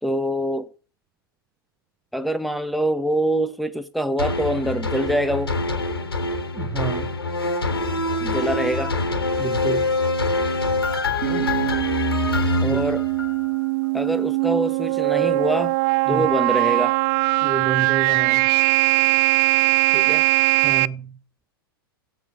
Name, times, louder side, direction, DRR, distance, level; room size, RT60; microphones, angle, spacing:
voice 1, 0.0-0.7 2.1-5.6 8.2-8.9 11.2-11.5 12.6-13.0 13.9-15.8 16.1-17.0 19.9-20.2, right 1 dB, ahead, 1.5 m, -24 dB
sound 1, 4.2-13.6 14.0-14.1, left 3 dB, 90° left, 3.5 m, -25 dB
voice 2, 6.5-7.1 9.4-9.9 12.6-12.8 16.1-16.3 17.4-18.5 20.6-21.2, right 5 dB, 15° right, 0.9 m, -29 dB
sound 2, 11.2-20.9, right 23 dB, 45° right, 0.6 m, -21 dB
16.5 x 6.0 x 8.2 m
hypercardioid pair, 105°, 12 cm